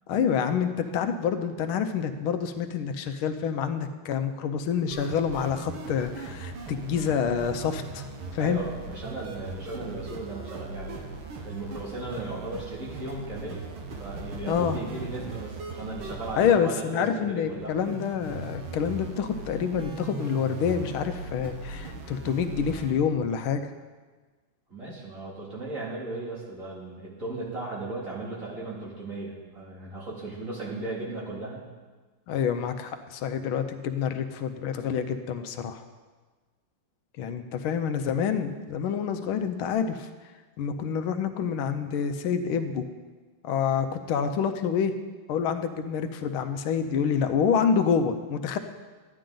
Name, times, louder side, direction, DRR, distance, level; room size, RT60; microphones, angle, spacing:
voice 1, 0.1-8.0 8.3-8.6 14.5-14.8 16.4-23.6 32.3-35.8 37.2-40.1 40.6-42.8 43.4-44.9 45.3-48.6, left 7 dB, 80° left, 8 dB, 1.5 m, -27 dB
sound 1, 4.9-22.9, right 3 dB, 80° right, 1.9 m, -39 dB
voice 2, 8.4-11.0 11.4-13.7 14.0-17.7 24.7-31.6, right 2 dB, 40° right, -5 dB, 2.8 m, -36 dB
13.0 x 10.0 x 3.9 m, 1.4 s
omnidirectional pair, 2.3 m